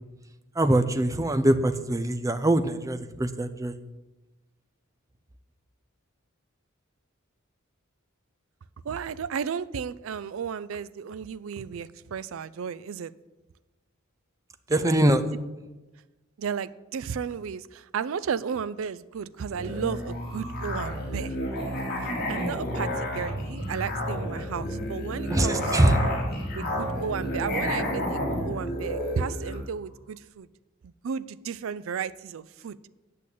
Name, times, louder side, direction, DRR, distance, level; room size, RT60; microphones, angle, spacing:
voice 1, 0.6-3.7 14.7-15.2 25.3-26.0, right 1 dB, 15° right, 10 dB, 0.6 m, -23 dB
voice 2, 8.8-13.1 14.7-15.0 16.4-21.4 22.0-25.9 26.5-30.5 30.8-32.8, right 6 dB, 65° right, 17 dB, 0.4 m, -34 dB
Musical instrument, 19.5-29.7, equal, 45° left, 2.8 m, -31 dB
8.5 x 7.0 x 8.4 m, 1.1 s
head